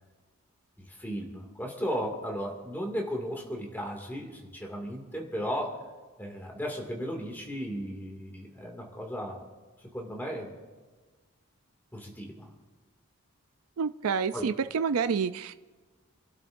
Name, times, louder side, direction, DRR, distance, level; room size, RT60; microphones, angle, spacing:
voice 1, 0.8-5.9 6.2-9.4 9.8-10.5 11.9-12.5 14.3-14.5, equal, 10° left, 0 dB, 2.2 m, -35 dB
voice 2, 13.8-15.5, right 6 dB, 80° right, 11 dB, 0.4 m, -28 dB
28.5 x 12.5 x 2.6 m, 1.3 s
head